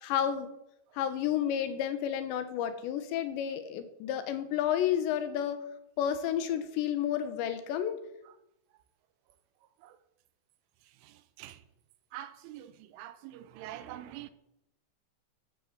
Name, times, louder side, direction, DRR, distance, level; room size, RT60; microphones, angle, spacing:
voice 1, 0.0-0.5 1.0-5.6 6.0-8.0, left 10 dB, 70° left, 10 dB, 3.2 m, -31 dB
voice 2, 12.1-12.7 13.0-14.3, right 12 dB, 80° right, 13 dB, 3.3 m, -44 dB
11.5 x 11.0 x 8.2 m, 0.83 s
omnidirectional pair, 5.8 m